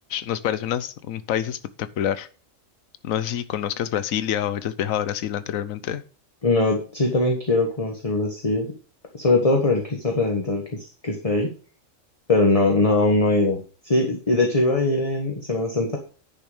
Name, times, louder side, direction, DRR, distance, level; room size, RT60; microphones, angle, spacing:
voice 1, 0.1-2.3 3.0-6.0, left 10 dB, 80° left, 1.1 m, -27 dB
voice 2, 6.4-8.7 9.1-11.5 12.3-16.0, left 2 dB, 25° left, 1.4 m, -21 dB
10.5 x 6.2 x 5.0 m
omnidirectional pair, 1.4 m